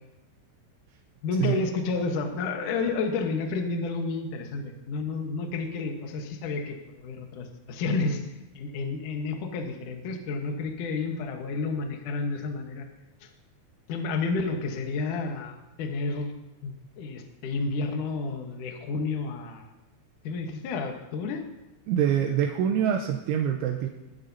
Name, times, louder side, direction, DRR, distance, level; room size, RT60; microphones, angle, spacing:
voice 1, 1.2-8.2 8.5-12.8 13.2-13.3 13.9-16.3 16.6-19.7 20.2-21.4, left 3 dB, 80° left, 3 dB, 1.8 m, -30 dB
voice 2, 21.9-23.9, right 9 dB, 80° right, 2 dB, 3.0 m, -25 dB
22.5 x 12.5 x 2.8 m, 0.99 s
omnidirectional pair, 5.8 m